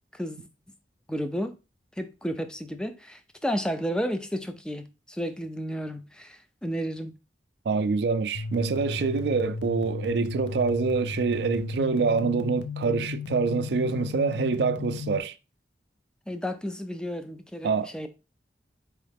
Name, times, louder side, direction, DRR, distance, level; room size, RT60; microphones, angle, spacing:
voice 1, 0.1-0.5 1.1-1.5 2.0-7.1 16.3-18.1, equal, 5° left, 0.4 m, -32 dB
voice 2, 7.7-15.3 17.6-17.9, right 4 dB, 65° right, 0.4 m, -26 dB
sound 1, 8.3-15.2, left 4 dB, 80° left, 0.6 m, -34 dB
4.7 x 3.1 x 3.4 m
head